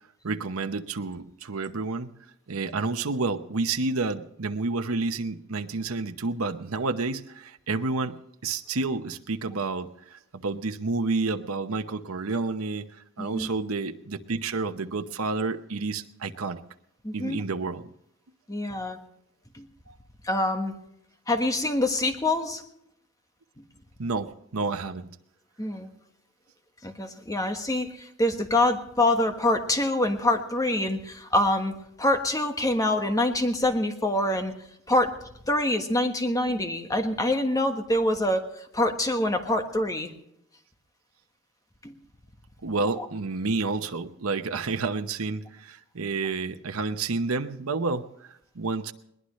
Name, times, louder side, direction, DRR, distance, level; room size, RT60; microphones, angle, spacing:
voice 1, 0.2-2.1 2.5-8.2 8.4-12.9 13.2-16.6 17.1-17.9 19.9-20.0 24.0-25.1 42.6-48.9, right 3 dB, 85° right, 7 dB, 0.9 m, -30 dB
voice 2, 17.0-17.4 18.5-19.0 19.5-19.7 20.2-20.7 21.3-22.6 25.6-25.9 26.8-34.5 34.9-35.1 35.5-40.1 41.8-41.9 43.0-43.1, left 1 dB, 15° left, 6 dB, 1.4 m, -25 dB
21.5 x 19.5 x 3.2 m, 0.77 s
head